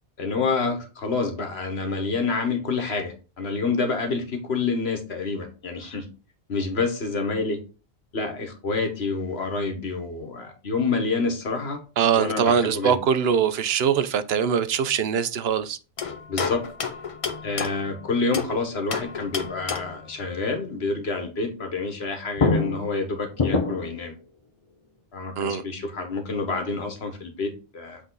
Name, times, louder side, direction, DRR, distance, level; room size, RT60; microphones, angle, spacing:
voice 1, 0.2-6.1 6.5-7.6 8.1-11.8 12.2-13.0 16.3-16.6 17.4-24.1 25.1-28.0, left 4 dB, 90° left, 1.6 m, -28 dB
voice 2, 12.0-15.8 25.4-25.6, right 7 dB, 80° right, 0.9 m, -22 dB
sound 1, 16.0-18.6 18.9-20.1 22.0-22.1 22.4-24.0, left 4 dB, 40° left, 0.6 m, -28 dB
8.0 x 3.7 x 3.9 m
omnidirectional pair, 1.0 m